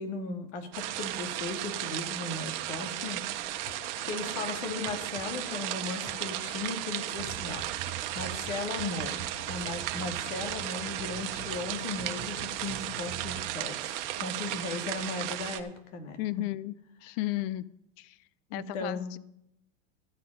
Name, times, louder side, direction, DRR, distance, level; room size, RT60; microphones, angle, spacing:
voice 1, 0.0-3.2 3.6-3.7 4.0-7.7 8.1-16.2 18.5-19.1, left 3 dB, 75° left, 5 dB, 2.4 m, -37 dB
sound 1, 0.7-15.6, right 14 dB, 70° right, 1.1 m, -35 dB
sound 2, 3.7-13.3, left 7 dB, 35° left, 1.0 m, -49 dB
sound 3, 7.2-13.6, right 15 dB, 55° right, 0.9 m, -45 dB
voice 2, 16.2-17.6 18.0-18.2 18.5-19.2, left 16 dB, 55° left, 20 dB, 0.5 m, -34 dB
14.0 x 7.6 x 5.4 m, 0.79 s
supercardioid pair, 125°, 37 cm